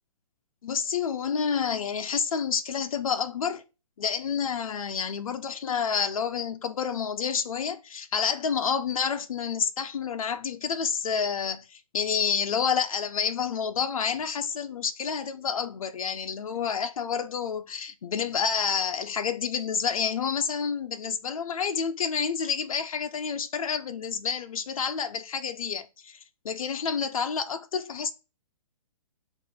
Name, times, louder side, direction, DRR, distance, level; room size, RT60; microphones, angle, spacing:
voice 1, 0.6-3.6 4.0-26.2 26.4-28.1, left 6 dB, 70° left, 1.0 m, -29 dB
8.3 x 3.0 x 5.6 m
hypercardioid pair, 145°, 18 cm